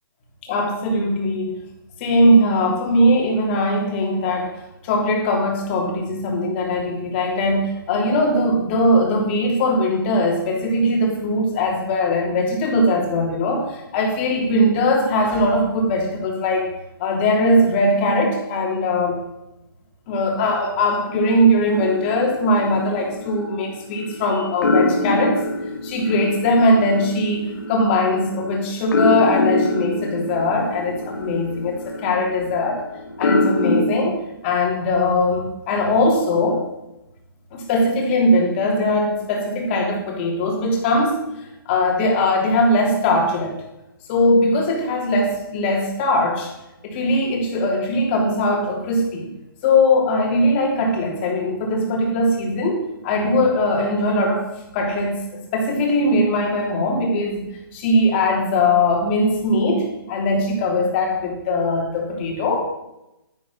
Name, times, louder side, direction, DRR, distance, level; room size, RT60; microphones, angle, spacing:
voice 1, 0.5-1.6 2.0-4.5 4.8-16.7 17.0-19.2 20.1-25.4 25.8-32.8 33.2-36.6 37.5-41.2 41.6-43.5 44.1-46.5 46.8-49.3 49.6-54.5 54.7-57.4 57.7-62.6, left 1 dB, 30° left, 0 dB, 3.2 m, -20 dB
sound 1, 21.7-24.2 24.6-33.8, left 2 dB, 65° left, 2.2 m, -24 dB
11.5 x 11.0 x 5.6 m, 0.92 s
hypercardioid pair, 160°, 12 cm